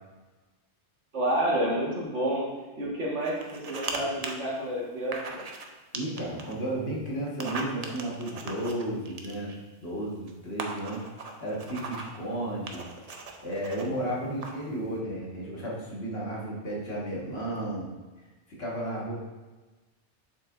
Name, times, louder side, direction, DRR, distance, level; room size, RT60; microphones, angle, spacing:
voice 1, 1.1-2.5 2.8-5.5, right 1 dB, 75° right, -5 dB, 2.0 m, -29 dB
sound 1, 3.2-4.0 4.2-4.3 5.1-5.7 5.9-6.5 7.3-9.6 10.3-10.4 10.6-12.2 12.7-13.9 14.4-14.7, right 3 dB, 40° right, 0.6 m, -38 dB
voice 2, 5.9-9.5 9.8-11.0 11.4-12.8 13.4-17.9 18.6-19.1, right 1 dB, 60° left, -5 dB, 1.8 m, -33 dB
7.5 x 6.6 x 2.5 m, 1.2 s
omnidirectional pair, 1.2 m